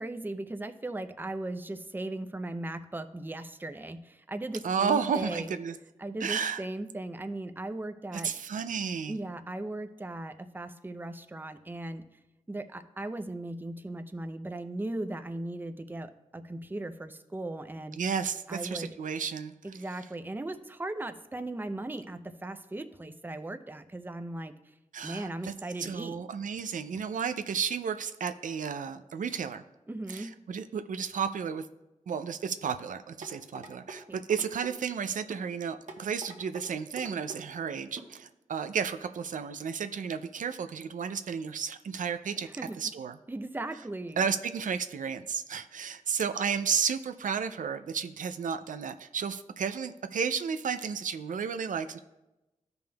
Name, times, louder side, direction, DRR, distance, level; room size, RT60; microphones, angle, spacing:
voice 1, 0.0-5.5 6.0-8.3 9.1-12.1 12.5-18.0 18.5-18.9 19.6-24.7 25.0-26.2 26.9-27.0 29.9-30.3 34.1-34.2 42.4-42.8 43.3-44.2, right 2 dB, 15° right, 8 dB, 0.5 m, -37 dB
voice 2, 4.6-5.8 6.2-6.6 8.1-9.2 18.0-19.5 24.9-25.5 25.8-29.6 30.1-31.7 32.1-42.5 42.8-43.2 44.2-52.0, right 6 dB, 80° right, 9 dB, 0.4 m, -32 dB
sound 1, 33.2-34.0 34.3-34.7 35.3-35.5 35.9-36.7 37.0-37.4 38.0-38.1 38.5-38.6, right 3 dB, 65° right, 1.0 m, -43 dB
14.0 x 5.2 x 2.2 m, 0.98 s
wide cardioid pair, 75°, 13 cm